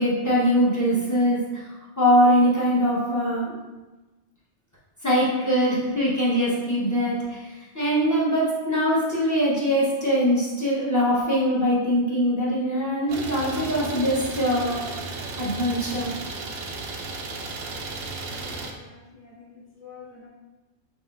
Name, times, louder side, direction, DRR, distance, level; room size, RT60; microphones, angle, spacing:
voice 1, 0.0-1.6 2.0-3.6 5.0-14.8 15.4-16.1, equal, 15° left, -7 dB, 1.1 m, -22 dB
Idling, 13.1-18.7, right 3 dB, 65° right, 0.8 m, -34 dB
voice 2, 18.3-20.3, left 6 dB, 15° right, -7 dB, 0.4 m, -48 dB
5.5 x 3.3 x 2.5 m, 1.2 s
omnidirectional pair, 1.2 m